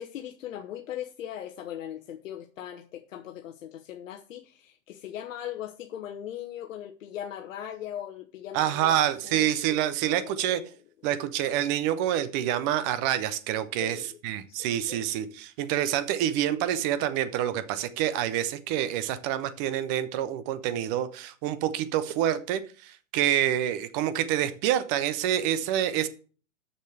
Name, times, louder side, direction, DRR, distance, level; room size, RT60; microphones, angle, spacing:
voice 1, 0.0-9.5 10.1-10.4 13.8-14.2 14.5-15.0, left 10 dB, 70° left, 1.1 m, -39 dB
voice 2, 8.5-10.6 11.0-26.1, right 11 dB, 15° right, 0.3 m, -27 dB
6.6 x 6.5 x 6.5 m
hypercardioid pair, 135°, 41 cm